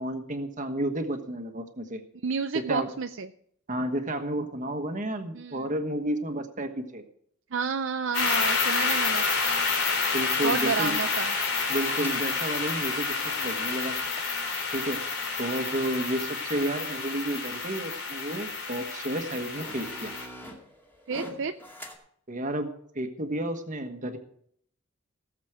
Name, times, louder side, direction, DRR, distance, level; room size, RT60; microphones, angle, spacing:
voice 1, 0.0-2.0 2.5-2.9 3.7-7.0 10.1-10.9 11.7-13.9 14.7-15.0 15.4-20.1 22.3-22.7 22.9-24.2, right 1 dB, 35° right, 7 dB, 1.4 m, -31 dB
voice 2, 2.2-3.3 5.3-5.7 7.5-9.2 10.4-11.3 21.1-21.5, right 5 dB, 60° right, 8 dB, 0.5 m, -30 dB
sound 1, 8.1-20.3, left 4 dB, 85° left, 3.4 m, -29 dB
sound 2, 11.1-15.8 16.3-16.4 16.5-17.0 17.8-17.9 18.8-18.9 19.3-22.0, equal, 10° left, 2.3 m, -46 dB
18.0 x 7.4 x 4.9 m, 0.65 s
head